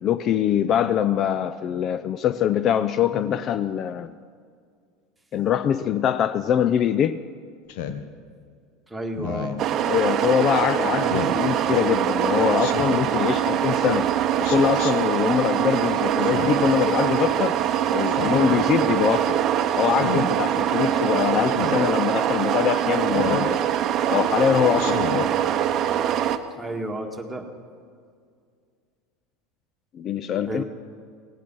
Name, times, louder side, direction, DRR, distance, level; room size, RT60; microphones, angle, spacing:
voice 1, 0.0-4.1 5.3-7.2 9.9-14.1 14.4-17.6 17.9-19.4 19.8-23.7 24.1-25.3 29.9-30.6, left 9 dB, 45° left, 14 dB, 0.4 m, -23 dB
Speech synthesizer, 7.7-8.0 9.1-9.7 11.1-11.4 12.6-13.1 14.4-14.9 16.2-16.8 18.0-18.6 19.9-20.3 21.5-21.8 23.1-23.5 24.8-25.3, left 7 dB, 70° left, 0.9 m, -31 dB
voice 2, 8.9-9.6 26.5-27.5 30.5-30.6, right 1 dB, 10° right, 2 dB, 1.8 m, -31 dB
sound 1, 9.6-26.4, right 10 dB, 45° right, 0.7 m, -23 dB
17.5 x 9.0 x 6.1 m, 2.1 s
hypercardioid pair, 90°, 0 cm